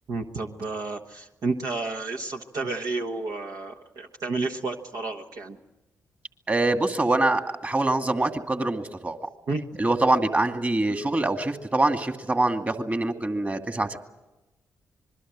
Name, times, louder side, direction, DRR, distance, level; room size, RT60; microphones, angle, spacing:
voice 1, 0.1-5.6 9.5-9.6, right 3 dB, 60° right, 2 dB, 1.3 m, -31 dB
voice 2, 6.5-9.3 9.8-14.0, right 2 dB, 25° right, 7 dB, 2.2 m, -24 dB
26.0 x 21.5 x 7.6 m, 1.0 s
hypercardioid pair, 45°, 7 cm